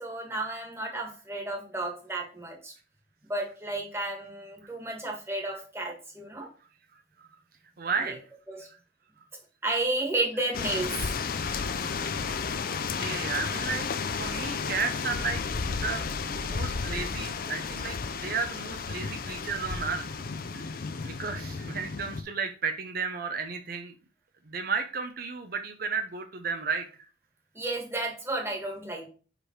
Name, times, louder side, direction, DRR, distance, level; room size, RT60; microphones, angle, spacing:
voice 1, 0.0-2.7 3.3-6.5 8.1-8.2 8.5-8.7 9.6-11.0 27.5-29.1, right 2 dB, 15° right, 0 dB, 1.6 m, -32 dB
voice 2, 7.8-8.2 12.7-15.4 15.7-20.2 20.5-23.9 24.5-26.9, right 5 dB, 55° right, 7 dB, 0.6 m, -33 dB
sound 1, 10.5-22.2, left 5 dB, 50° left, 0.5 m, -33 dB
5.0 x 4.9 x 4.4 m, 0.38 s
head